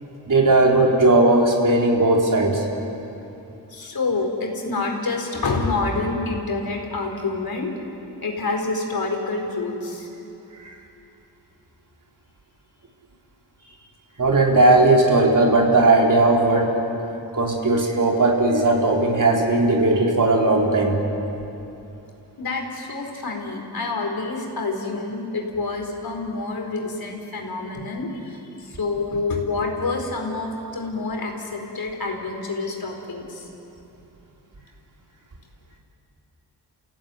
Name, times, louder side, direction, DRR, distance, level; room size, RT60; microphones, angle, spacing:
voice 1, 0.3-2.6 14.2-16.8 17.3-21.0, right 2 dB, 50° right, -1 dB, 4.3 m, -17 dB
voice 2, 3.7-7.7 8.2-10.1 13.6-13.8 22.4-33.5, left 3 dB, 60° left, 1 dB, 4.6 m, -27 dB
29.0 x 16.5 x 9.4 m, 2.9 s
cardioid pair, 75°, 41 cm